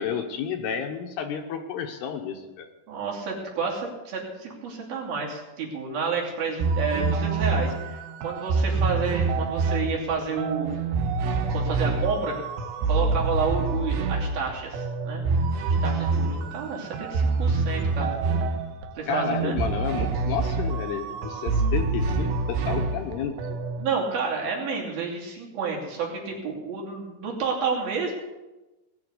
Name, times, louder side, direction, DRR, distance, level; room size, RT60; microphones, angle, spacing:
voice 1, 0.0-2.7 19.1-23.6, left 7 dB, 75° left, 4 dB, 2.8 m, -31 dB
voice 2, 2.9-10.8 11.5-12.3 12.9-15.2 15.8-18.1 19.0-19.6 23.8-28.1, right 5 dB, 55° right, -3 dB, 4.4 m, -30 dB
sound 1, 6.6-23.9, right 4 dB, 75° right, 3.2 m, -26 dB
20.0 x 7.0 x 8.3 m, 1.1 s
omnidirectional pair, 5.3 m